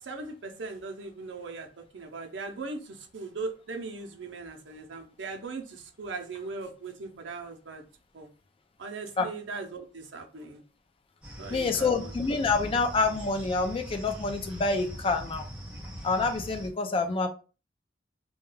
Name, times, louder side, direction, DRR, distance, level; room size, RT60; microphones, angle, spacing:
voice 1, 0.0-7.8 8.1-8.3 8.8-10.6 11.4-12.1, right 3 dB, 75° right, 0.6 m, -39 dB
sound 1, 11.2-16.7, equal, 5° right, 0.6 m, -41 dB
voice 2, 11.5-15.4 16.0-17.3, left 4 dB, 30° left, 0.3 m, -27 dB
2.3 x 2.2 x 3.0 m
head